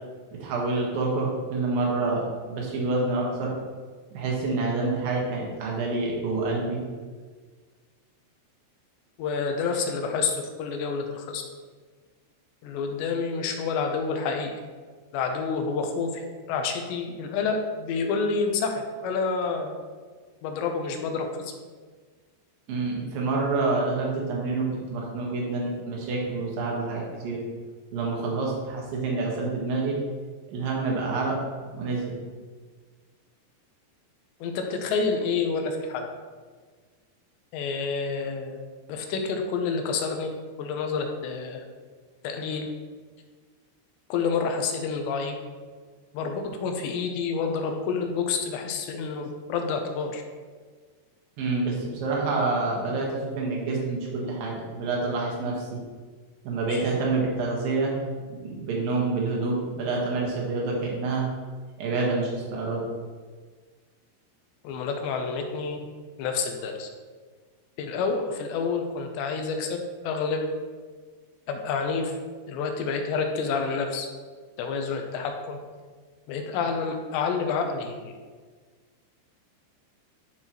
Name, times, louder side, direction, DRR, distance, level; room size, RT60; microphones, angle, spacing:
voice 1, 0.4-3.6 4.1-6.8 22.7-27.4 27.9-30.0 30.5-32.2 51.4-55.8 56.4-58.0 58.3-61.2 61.8-62.8, right 3 dB, 60° right, -2 dB, 2.9 m, -27 dB
voice 2, 9.2-11.4 12.6-14.6 15.1-16.2 16.5-18.8 19.0-19.7 20.4-21.5 34.4-36.1 37.5-38.6 38.9-40.3 40.6-41.6 42.2-42.7 44.1-45.4 46.1-50.2 56.7-56.9 64.6-65.8 66.2-66.9 67.8-70.5 71.5-72.1 72.5-74.1 74.6-75.6 76.3-78.1, left 5 dB, 85° left, 4 dB, 2.9 m, -28 dB
11.5 x 5.7 x 3.0 m, 1.5 s
omnidirectional pair, 5.2 m